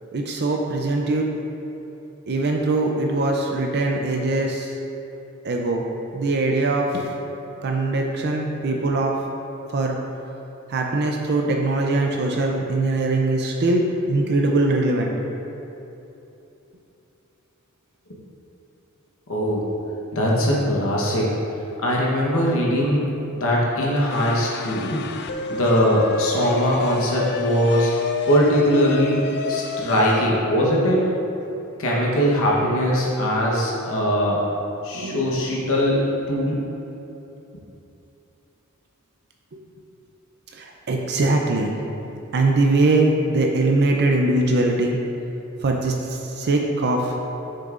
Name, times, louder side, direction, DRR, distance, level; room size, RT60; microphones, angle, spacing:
voice 1, 0.1-1.3 2.3-4.8 5.4-5.8 6.1-7.1 7.6-9.2 9.7-10.0 10.7-15.1 34.9-35.4 40.5-41.7 42.3-45.0 45.6-47.1, right 2 dB, 50° right, 1 dB, 0.5 m, -22 dB
voice 2, 19.3-19.7 20.1-21.3 21.8-25.0 25.5-27.9 28.3-31.0 31.8-34.4 34.8-36.0 36.3-36.6, equal, 65° left, -4 dB, 1.1 m, -21 dB
sound 1, 24.1-30.3, left 4 dB, 50° left, 0.4 m, -30 dB
7.8 x 6.5 x 2.5 m, 3.0 s
head